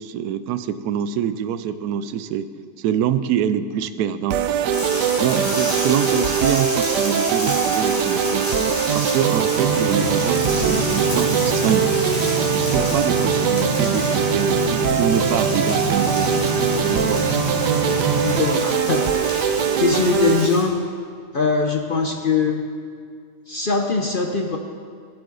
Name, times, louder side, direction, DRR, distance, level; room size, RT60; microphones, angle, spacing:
voice 1, 0.0-2.5 2.8-4.4 5.2-8.5 8.9-11.9 12.5-16.3 16.8-17.3, right 9 dB, 75° right, 12 dB, 1.0 m, -25 dB
sound 1, 4.3-20.5, right 8 dB, 90° right, 1.2 m, -22 dB
sound 2, 4.7-20.6, left 1 dB, 30° left, 3.9 m, -30 dB
sound 3, 9.6-18.4, equal, 65° left, 3.4 m, -27 dB
voice 2, 18.2-20.7 21.3-22.6 23.5-24.6, left 4 dB, 50° left, 2 dB, 0.6 m, -22 dB
15.5 x 8.2 x 4.0 m, 2.2 s
omnidirectional pair, 1.8 m